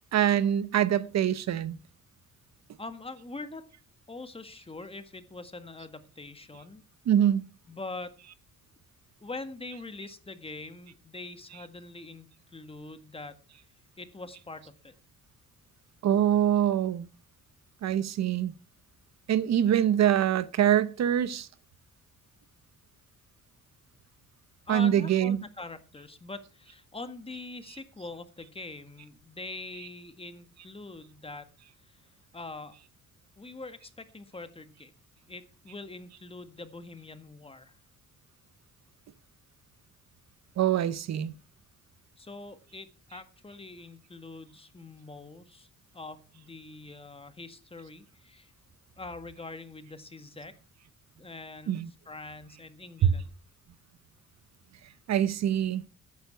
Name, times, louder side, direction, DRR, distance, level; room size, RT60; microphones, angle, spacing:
voice 1, 0.1-1.8 7.1-7.4 16.0-17.1 17.8-18.5 19.3-21.5 24.7-25.4 40.6-41.3 51.7-51.9 55.1-55.8, right 10 dB, 60° right, 0.9 m, -24 dB
voice 2, 2.8-3.7 4.1-6.8 7.7-8.2 9.2-13.4 14.0-14.9 24.7-31.5 31.9-32.0 32.3-32.8 33.4-34.9 35.3-37.7 42.2-45.7 45.9-48.5 49.0-50.5 51.2-53.3, left 3 dB, 20° left, 1.7 m, -43 dB
13.5 x 9.8 x 4.6 m
cardioid pair, 90°, 30 cm